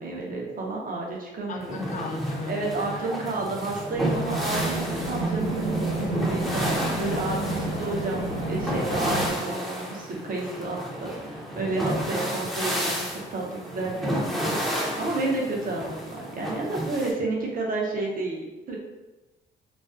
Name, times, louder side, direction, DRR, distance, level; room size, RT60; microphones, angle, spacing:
voice 1, 0.0-1.8 2.5-18.7, right 2 dB, 45° right, -2 dB, 0.7 m, -31 dB
voice 2, 1.5-3.4, left 3 dB, 40° left, 2 dB, 0.4 m, -36 dB
sound 1, 1.6-17.1, equal, ahead, 0.6 m, -32 dB
sound 2, 3.9-9.3, right 2 dB, 85° right, 0.9 m, -29 dB
2.4 x 2.2 x 2.4 m, 1.0 s
cardioid pair, 90°, 20 cm